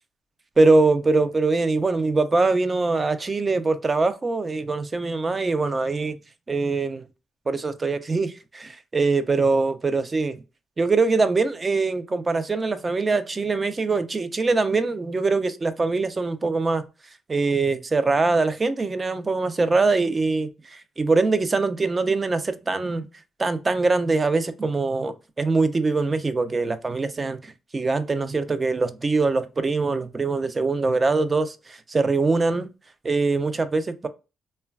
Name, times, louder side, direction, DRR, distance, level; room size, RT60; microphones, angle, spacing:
voice 1, 0.6-6.2 6.5-7.0 7.5-10.4 10.8-16.8 17.3-23.1 23.4-32.7 33.0-34.1, right 3 dB, 30° right, 0.4 m, -23 dB
3.1 x 2.1 x 2.2 m
cardioid pair, 90°, 0 cm